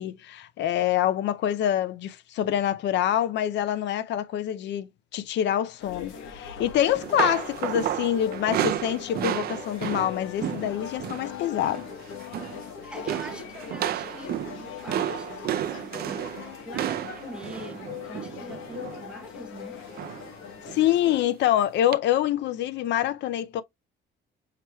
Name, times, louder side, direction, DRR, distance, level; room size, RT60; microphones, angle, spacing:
voice 1, 0.0-11.9 20.7-23.6, left 11 dB, 60° left, 0.5 m, -26 dB
sound 1, 5.8-21.2, left 8 dB, 85° left, 1.3 m, -41 dB
sound 2, 6.8-11.3 11.6-11.9 12.2-12.7 13.1-19.1 20.0-20.3 20.7-20.9 21.9-22.0, right 11 dB, 50° right, 0.4 m, -32 dB
voice 2, 12.8-19.9, right 1 dB, 5° right, 0.8 m, -44 dB
5.8 x 3.1 x 2.3 m
cardioid pair, 160°, 20 cm